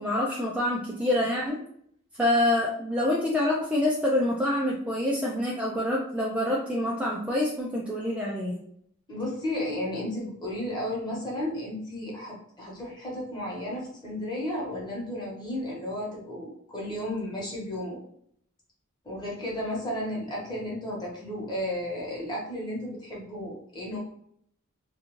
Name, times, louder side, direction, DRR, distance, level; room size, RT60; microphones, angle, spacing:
voice 1, 0.0-1.6 2.2-8.6, left 1 dB, 5° right, -4 dB, 0.3 m, -26 dB
voice 2, 9.1-18.0 19.0-24.0, left 1 dB, 20° left, -4 dB, 1.0 m, -33 dB
2.4 x 2.3 x 3.0 m, 0.66 s
head